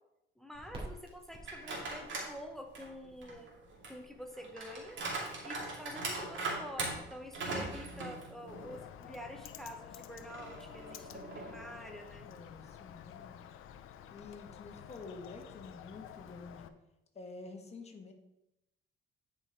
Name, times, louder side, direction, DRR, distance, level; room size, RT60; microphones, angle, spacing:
voice 1, 0.4-3.5 3.9-5.0 5.4-12.3, equal, ahead, 4 dB, 0.9 m, -47 dB
Crackle, 0.5-7.9, right 1 dB, 30° right, 2.5 m, -54 dB
sound 1, 1.4-2.3 2.8-8.8 9.2-9.3 10.3-11.8, right 3 dB, 65° right, 2.3 m, -40 dB
Bird, 8.5-16.7, left 10 dB, 85° left, 0.6 m, -51 dB
voice 2, 12.2-13.5 14.1-16.7 17.1-18.1, left 3 dB, 30° left, 3 dB, 1.5 m, -49 dB
9.4 x 5.1 x 4.5 m, 0.89 s
cardioid pair, 120°, 21 cm